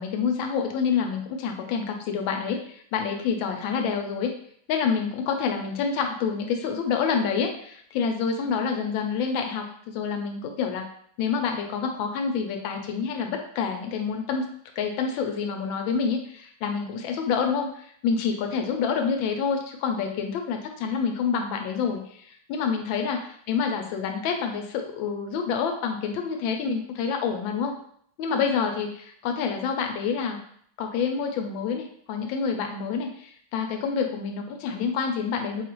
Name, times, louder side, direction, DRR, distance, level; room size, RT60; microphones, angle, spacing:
voice 1, 0.0-4.3 4.7-10.9 11.2-14.5 14.8-23.2 23.5-27.7 28.2-30.4 30.8-35.6, left 6 dB, 75° left, 4 dB, 1.3 m, -27 dB
4.8 x 2.4 x 2.9 m, 0.64 s
omnidirectional pair, 2.3 m